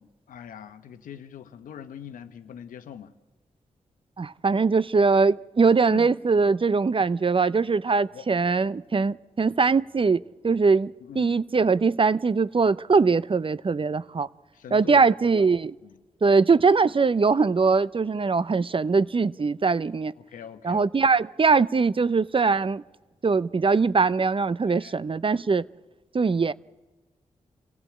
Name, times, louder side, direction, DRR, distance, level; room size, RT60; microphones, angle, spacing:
voice 1, 0.0-3.1 5.9-6.1 7.0-7.1 8.1-8.2 11.0-11.3 14.5-15.1 15.8-16.0 20.2-20.9 24.7-25.0, left 8 dB, 90° left, 1.0 m, -42 dB
voice 2, 4.2-14.3 14.7-15.7 16.2-20.1 20.6-22.8 23.2-25.7 26.1-26.5, right 4 dB, 40° right, 0.7 m, -22 dB
27.0 x 15.5 x 8.6 m
supercardioid pair, 40°, 14 cm